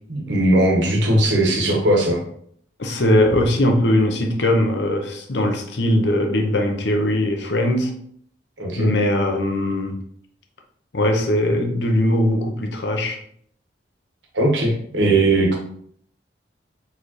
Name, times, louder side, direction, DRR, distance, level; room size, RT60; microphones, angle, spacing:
voice 1, 0.1-2.2 8.6-8.9 14.3-15.6, right 1 dB, 85° right, 0 dB, 1.3 m, -18 dB
voice 2, 2.8-7.9 8.7-10.0 10.9-13.2, left 1 dB, 70° left, 3 dB, 0.8 m, -20 dB
4.5 x 3.4 x 3.1 m, 0.63 s
head